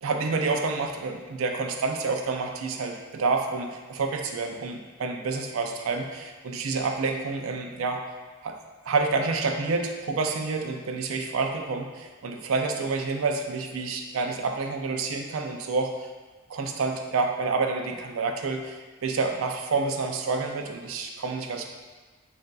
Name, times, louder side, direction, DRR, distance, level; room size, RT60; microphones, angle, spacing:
voice 1, 0.0-8.0 8.4-8.5 8.8-15.9 16.5-21.7, right 4 dB, 80° right, 4 dB, 0.4 m, -28 dB
6.4 x 2.5 x 2.3 m, 1.3 s
head